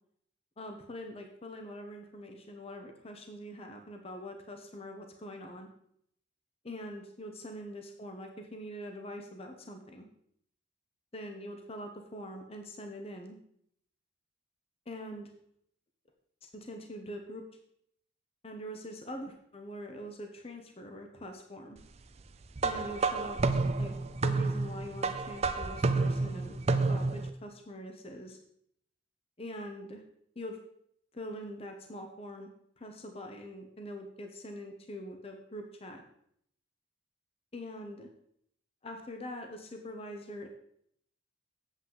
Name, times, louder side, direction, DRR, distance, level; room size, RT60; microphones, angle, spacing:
voice 1, 0.6-5.7 6.6-10.1 11.1-13.4 14.9-15.3 16.5-17.4 18.4-21.8 22.6-23.9 24.2-26.6 26.9-28.4 29.4-30.0 30.4-30.6 31.1-32.5 32.8-36.0 37.5-38.1 38.8-40.5, equal, 30° left, 4 dB, 0.8 m, -43 dB
sound 1, 22.6-27.3, right 3 dB, 30° right, 0.4 m, -30 dB
8.2 x 7.7 x 3.9 m, 0.70 s
head